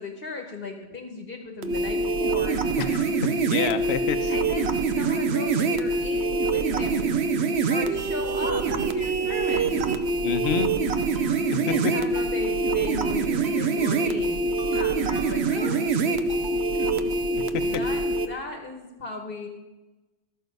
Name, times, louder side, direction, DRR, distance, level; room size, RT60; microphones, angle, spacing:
voice 1, 0.0-3.0 4.3-7.1 7.7-9.8 11.7-14.4 14.7-15.8 16.7-16.9 17.6-19.5, left 3 dB, 50° left, 3 dB, 1.2 m, -37 dB
sound 1, 1.6-18.3, right 3 dB, 70° right, 1.0 m, -25 dB
voice 2, 2.8-3.1 3.4-4.3 10.2-10.7 11.5-11.9, left 7 dB, 65° left, 9 dB, 0.9 m, -28 dB
Ringtone, 10.4-10.6 11.1-11.4 11.7-11.9 12.1-12.3 12.9-13.1 13.4-13.6 13.9-14.0 14.6-14.8 15.1-15.3 15.6-15.7 16.3-16.6 16.9-17.0, right 2 dB, 20° right, 1.6 m, -44 dB
12.5 x 6.8 x 5.2 m, 1.1 s
omnidirectional pair, 1.2 m